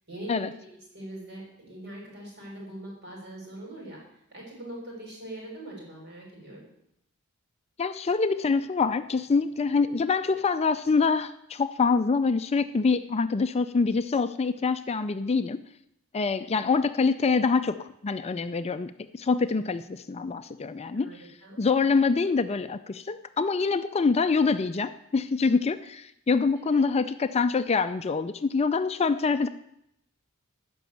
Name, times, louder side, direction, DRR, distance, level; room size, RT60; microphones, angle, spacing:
voice 1, 0.1-6.7 20.9-21.6 26.6-26.9, right 1 dB, 50° right, -2 dB, 5.8 m, -42 dB
voice 2, 7.8-15.6 16.1-18.9 19.2-21.1 21.6-29.5, left 4 dB, 30° left, 10 dB, 0.4 m, -25 dB
12.5 x 6.2 x 9.3 m, 0.79 s
head